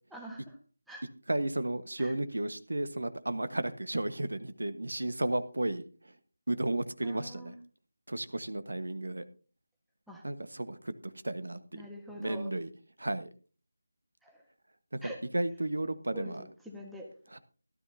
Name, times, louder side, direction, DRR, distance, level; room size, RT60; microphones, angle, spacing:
voice 1, 0.1-0.6 0.9-1.1 2.0-2.1 7.0-7.6 10.1-10.2 11.7-12.5 14.2-14.5 15.0-15.2 16.1-17.1, equal, ahead, -1 dB, 1.5 m, -45 dB
voice 2, 1.3-6.2 6.5-7.5 8.1-9.3 10.2-11.8 12.2-12.7 13.0-13.3 14.9-16.4 17.3-17.4, right 1 dB, 65° right, 12 dB, 1.3 m, -33 dB
17.0 x 12.5 x 2.7 m, 0.36 s
figure-of-eight pair, 165°, 0 cm